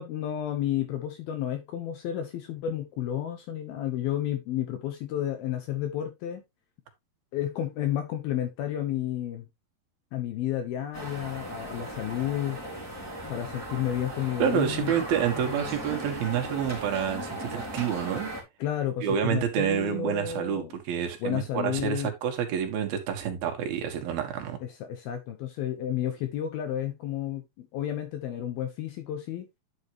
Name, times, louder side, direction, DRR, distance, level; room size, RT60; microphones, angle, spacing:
voice 1, 0.0-6.4 7.3-9.5 10.1-12.6 13.3-14.9 15.4-15.7 18.6-20.7 21.2-22.1 24.9-29.5, left 11 dB, 70° left, 2.7 m, -31 dB
sound 1, 10.9-18.4, right 1 dB, 5° left, 3.3 m, -37 dB
voice 2, 14.4-18.3 19.0-24.6, right 8 dB, 65° right, 3.2 m, -28 dB
10.5 x 6.4 x 3.0 m
omnidirectional pair, 4.9 m